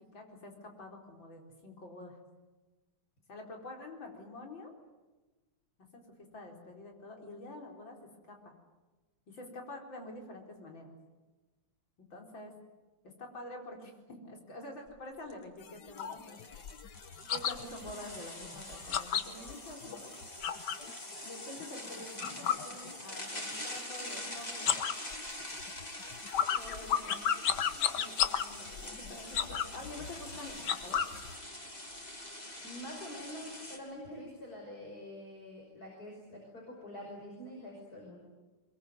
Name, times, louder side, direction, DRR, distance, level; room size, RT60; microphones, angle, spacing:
voice 1, 0.1-2.2 3.3-4.7 5.9-8.0 8.3-8.5 9.3-10.9 12.0-12.5 13.0-16.6 17.3-20.1 21.2-24.7 26.7-26.9 27.7-31.0, left 1 dB, 85° left, 2 dB, 4.9 m, -47 dB
sound 1, 14.9-15.0 15.3-15.4 16.0-33.8, left 1 dB, 20° left, 3.5 m, -45 dB
sound 2, 15.6-20.9 21.3-23.4 23.7-24.2 24.5-31.4, left 8 dB, 65° left, 1.7 m, -34 dB
voice 2, 26.6-27.2 32.6-38.2, left 1 dB, 50° left, -1 dB, 6.0 m, -46 dB
23.0 x 22.5 x 9.5 m, 1.2 s
omnidirectional pair, 2.0 m